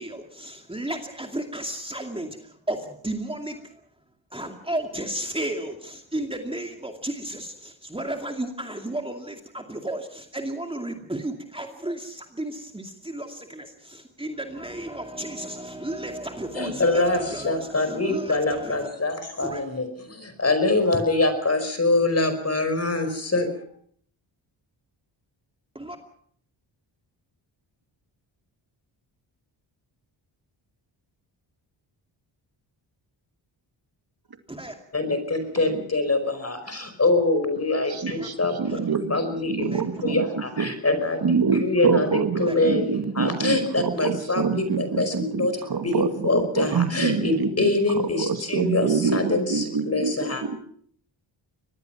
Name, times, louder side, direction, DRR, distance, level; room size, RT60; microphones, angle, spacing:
voice 1, 0.0-3.9 4.3-18.9 19.4-19.6 25.7-26.0 34.5-34.7 38.1-38.3 38.6-38.8 39.6-40.1 42.4-42.6, right 1 dB, 10° right, 4 dB, 2.4 m, -33 dB
voice 2, 16.6-23.5 34.9-38.8 39.1-39.7 40.0-42.1 42.4-45.6 45.8-50.4, left 2 dB, 30° left, 9 dB, 5.3 m, -24 dB
voice 3, 37.9-39.2 39.5-40.2 40.6-40.7 41.2-50.6, right 5 dB, 50° right, 7 dB, 2.2 m, -26 dB
24.5 x 20.0 x 6.0 m, 0.62 s
cardioid pair, 95°, 47 cm